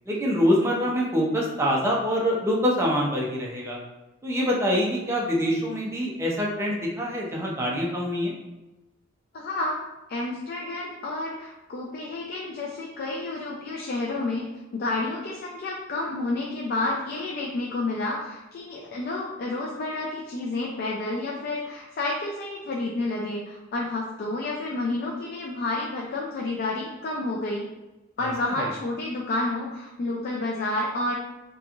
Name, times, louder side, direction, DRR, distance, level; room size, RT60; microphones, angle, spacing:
voice 1, 0.1-3.8 4.2-8.3 28.4-28.7, equal, 15° right, -3 dB, 0.5 m, -25 dB
voice 2, 9.3-9.8 10.1-27.7 28.2-31.2, left 2 dB, 50° left, -2 dB, 0.4 m, -30 dB
2.9 x 2.4 x 2.4 m, 1.1 s
head